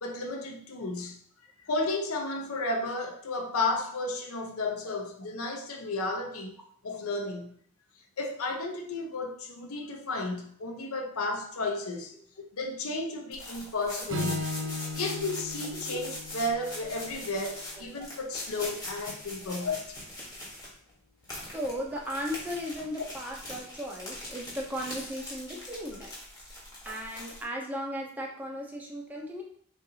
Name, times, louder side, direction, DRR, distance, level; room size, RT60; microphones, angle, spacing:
voice 1, 0.0-1.2 1.6-6.6 6.8-7.5 8.2-14.4 14.7-20.0, left 2 dB, 85° left, 3 dB, 0.7 m, -33 dB
sound 1, 13.3-20.9 21.2-27.4, left 1 dB, 15° left, 1.3 m, -42 dB
Strum, 14.1-18.4, left 2 dB, 60° right, 0.8 m, -38 dB
voice 2, 21.5-26.1 26.8-29.4, equal, 10° right, -2 dB, 0.7 m, -36 dB
6.5 x 2.6 x 2.8 m, 0.62 s
head